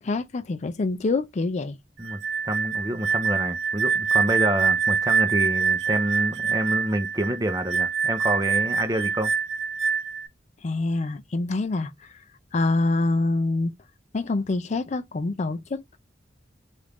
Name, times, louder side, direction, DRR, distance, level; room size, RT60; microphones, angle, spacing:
voice 1, 0.0-1.8 10.6-12.2 12.5-13.7 14.1-16.0, left 2 dB, 40° left, 0.4 m, -26 dB
voice 2, 2.0-9.3, right 1 dB, 20° right, 0.6 m, -27 dB
sound 1, 2.0-10.3, right 6 dB, 75° right, 0.5 m, -25 dB
3.0 x 2.5 x 3.4 m
head